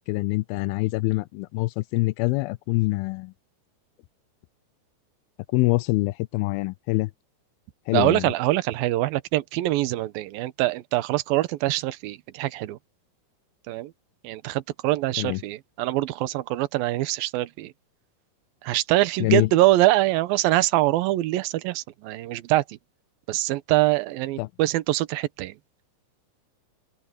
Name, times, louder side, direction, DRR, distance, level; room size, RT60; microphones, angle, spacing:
voice 1, 0.1-3.3 5.5-7.1 7.9-8.3 15.2-15.4 19.2-19.5 24.4-24.5, left 21 dB, 90° left, 2.5 m, -25 dB
voice 2, 7.9-12.8 13.7-13.9 14.2-17.7 18.6-22.8 23.3-25.6, right 16 dB, 75° right, 2.7 m, -24 dB
open air
omnidirectional pair, 4.3 m